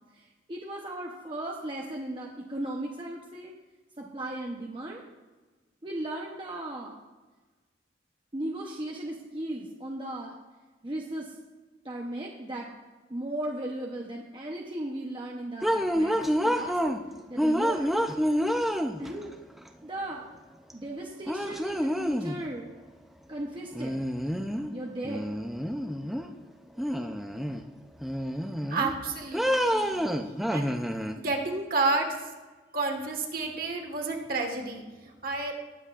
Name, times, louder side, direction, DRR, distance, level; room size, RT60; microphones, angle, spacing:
voice 1, 0.2-3.5 4.0-5.0 5.8-7.0 8.3-10.3 10.8-11.3 11.8-12.7 13.1-16.2 16.4-16.8 17.3-17.9 19.0-19.3 19.8-20.3 20.7-22.7 23.3-24.0 24.7-25.2, right 1 dB, 25° right, -1 dB, 0.8 m, -36 dB
sound 1, 15.6-17.0 17.4-19.3 20.7-20.8 21.3-22.4 23.7-24.7 25.0-26.3 26.8-27.6 28.0-28.9 29.3-31.1, equal, ahead, 0.5 m, -28 dB
voice 2, 28.7-30.0 30.5-30.7 31.1-32.1 32.7-35.5, right 3 dB, 50° right, 3 dB, 1.5 m, -30 dB
19.5 x 7.9 x 2.5 m, 1.3 s
head